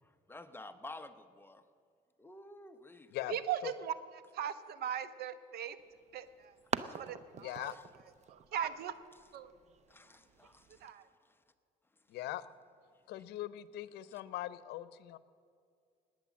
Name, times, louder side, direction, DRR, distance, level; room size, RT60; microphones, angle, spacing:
voice 1, 0.0-1.6 2.2-3.2 6.8-7.0 7.6-7.8 9.9-11.4, left 2 dB, 15° left, 9 dB, 0.8 m, -52 dB
voice 2, 3.3-3.9 4.3-5.8 6.1-7.7 8.3-8.9 9.3-9.5 10.8-11.0, right 9 dB, 70° right, 13 dB, 1.0 m, -39 dB
sound 1, 5.8-10.9, right 7 dB, 40° right, 0.7 m, -45 dB
voice 3, 7.4-7.7 12.1-12.4 13.1-15.2, left 14 dB, 80° left, 16 dB, 0.7 m, -41 dB
19.5 x 9.1 x 7.3 m, 2.3 s
cardioid pair, 110°, 17 cm